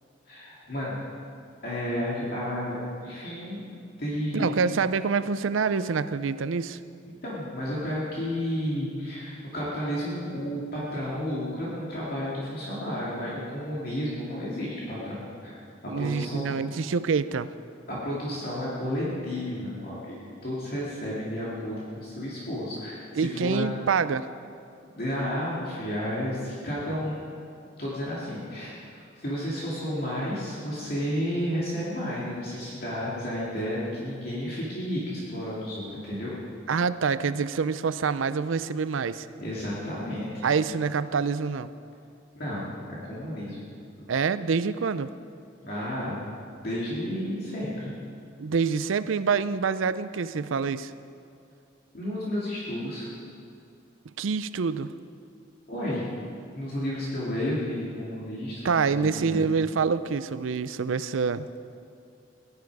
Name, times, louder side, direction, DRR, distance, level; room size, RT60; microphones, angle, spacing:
voice 1, 0.3-1.0 1.6-3.7 4.0-4.5 7.1-16.6 17.9-23.7 24.9-27.5 27.8-36.3 39.4-40.3 42.3-43.7 45.6-46.2 46.6-47.9 51.9-53.1 55.7-56.1 56.5-58.7 59.0-59.4, equal, 50° left, -7 dB, 2.5 m, -32 dB
voice 2, 4.3-6.8 15.9-17.5 23.2-24.3 36.7-39.3 40.4-41.7 44.1-45.1 48.4-50.9 54.2-54.9 58.6-61.5, right 5 dB, 90° right, 14 dB, 0.5 m, -26 dB
17.5 x 11.5 x 4.8 m, 2.5 s
head